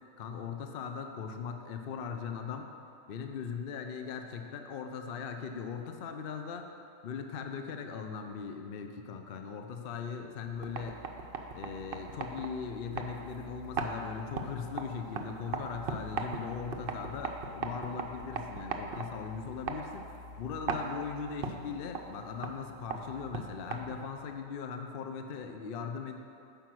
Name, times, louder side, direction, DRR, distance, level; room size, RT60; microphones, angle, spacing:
voice 1, 0.2-2.7 3.1-6.7 7.0-11.0 11.5-26.2, left 6 dB, 55° left, 5 dB, 0.7 m, -39 dB
sound 1, 10.5-24.2, right 4 dB, 55° right, 0.7 m, -40 dB
9.0 x 5.3 x 6.1 m, 2.6 s
omnidirectional pair, 1.4 m